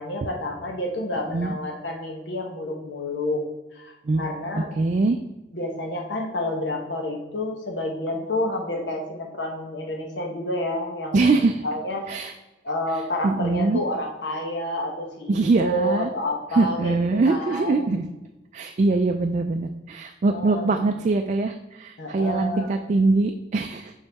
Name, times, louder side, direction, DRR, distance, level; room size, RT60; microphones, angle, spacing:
voice 1, 0.0-3.4 3.7-4.7 5.5-12.2 12.6-16.9 17.2-17.8 20.3-20.8 22.0-22.7, left 1 dB, 80° left, 1 dB, 1.1 m, -29 dB
voice 2, 4.8-5.2 11.1-11.5 12.1-12.3 13.2-13.8 15.3-16.1 16.5-18.0 18.5-23.9, right 3 dB, 45° right, 5 dB, 0.3 m, -22 dB
6.8 x 5.6 x 3.5 m, 1.0 s
head